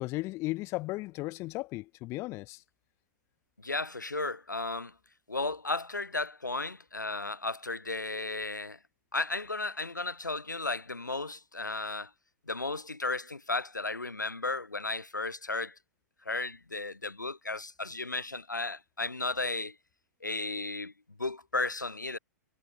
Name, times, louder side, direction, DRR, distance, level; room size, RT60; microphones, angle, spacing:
voice 1, 0.0-2.6, left 20 dB, 30° left, 0.6 m, -35 dB
voice 2, 3.6-4.9 5.3-8.8 9.1-12.1 12.5-15.8 16.3-19.8 20.2-20.9 21.2-22.2, left 3 dB, 90° left, 0.4 m, -34 dB
figure-of-eight pair, 105°, 10 cm